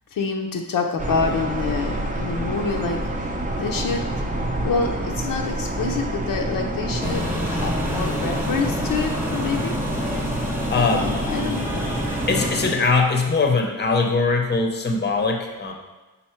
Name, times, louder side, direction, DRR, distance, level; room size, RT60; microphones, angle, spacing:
voice 1, 0.1-3.3 3.6-4.1 4.6-9.7 11.0-11.9, left 5 dB, 65° left, 2 dB, 0.6 m, -27 dB
sound 1, 1.0-12.5, right 1 dB, 20° right, 0.6 m, -28 dB
sound 2, 7.0-12.8, equal, 5° right, 0.9 m, -28 dB
voice 2, 10.7-11.1 12.3-15.7, left 3 dB, 30° left, 3 dB, 0.7 m, -21 dB
5.6 x 4.1 x 4.4 m, 1.2 s
wide cardioid pair, 155°, 36 cm